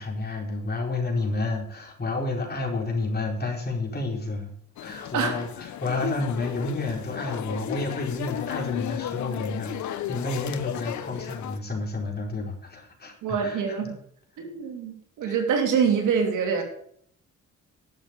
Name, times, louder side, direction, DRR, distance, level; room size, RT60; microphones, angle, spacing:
voice 1, 0.0-4.5 4.8-13.9 15.3-15.4, left 3 dB, 30° left, 1 dB, 4.4 m, -30 dB
sound 1, 4.8-11.6, left 11 dB, 70° left, 1.0 m, -34 dB
voice 2, 13.2-13.9 14.4-16.6, right 6 dB, 85° right, 3 dB, 3.1 m, -25 dB
12.0 x 7.3 x 8.3 m, 0.65 s
cardioid pair, 90°, 30 cm